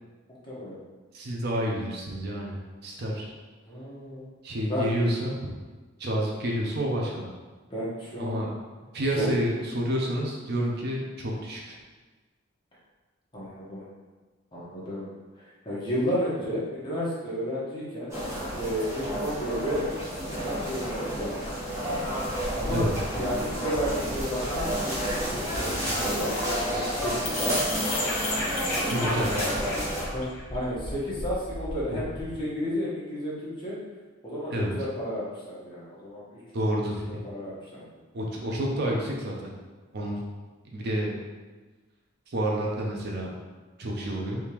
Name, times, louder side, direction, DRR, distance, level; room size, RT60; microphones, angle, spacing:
voice 1, 0.4-0.8 3.7-4.3 4.7-4.9 7.7-8.3 9.2-9.3 13.3-13.8 14.5-15.1 15.4-18.1 18.5-19.9 20.4-21.5 22.5-22.9 23.1-24.7 25.1-26.4 26.9-27.6 29.0-29.3 30.1-33.8 34.2-36.4 36.7-36.8 37.1-37.8, equal, 25° left, -8 dB, 1.0 m, -32 dB
voice 2, 1.1-3.3 4.4-5.5 6.0-7.2 8.2-8.5 8.9-11.8 22.7-22.9 28.9-29.3 31.9-32.0 34.5-34.8 36.5-37.2 38.1-39.5 39.9-40.2 40.7-41.2 42.3-43.3 43.8-44.4, right 1 dB, 55° right, -1 dB, 0.5 m, -29 dB
sound 1, 18.1-30.0, equal, 15° right, 0.8 m, -30 dB
sound 2, 22.3-32.4, left 1 dB, 80° left, 0.7 m, -35 dB
3.4 x 2.8 x 2.9 m, 1.3 s
head